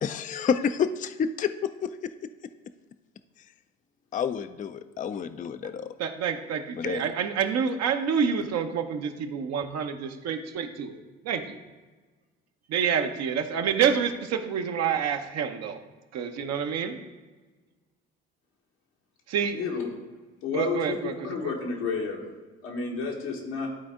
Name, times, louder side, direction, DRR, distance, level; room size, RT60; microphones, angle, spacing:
voice 1, 0.0-2.1 4.1-5.9 6.8-7.1, left 7 dB, 25° left, 11 dB, 0.4 m, -29 dB
voice 2, 6.0-11.6 12.7-15.8 16.1-17.0 19.3-19.6 20.5-21.5, right 7 dB, 60° right, 6 dB, 0.8 m, -28 dB
voice 3, 19.5-19.9 20.4-22.2 22.6-23.7, left 5 dB, 85° left, -1 dB, 1.5 m, -31 dB
11.5 x 4.2 x 3.6 m, 1.3 s
hypercardioid pair, 55°, 30 cm